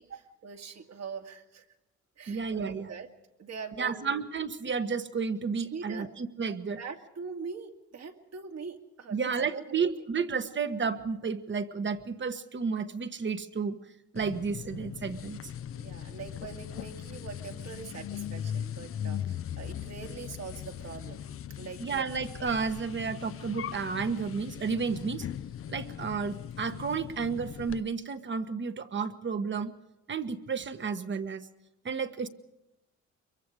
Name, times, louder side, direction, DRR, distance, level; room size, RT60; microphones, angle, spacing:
voice 1, 0.0-1.6 2.2-3.1 3.4-4.1 5.7-6.1 6.8-9.9 15.7-21.2 21.6-21.8, right 5 dB, 60° right, 3 dB, 2.4 m, -43 dB
voice 2, 2.3-2.9 3.8-6.8 9.1-13.8 14.1-15.4 21.8-25.3 25.7-29.7 30.1-31.5 31.8-32.3, right 5 dB, 40° right, 10 dB, 1.4 m, -32 dB
sound 1, 14.2-27.8, left 9 dB, 50° left, 0.6 m, -39 dB
24.0 x 23.0 x 4.9 m, 0.95 s
cardioid pair, 90°, 30 cm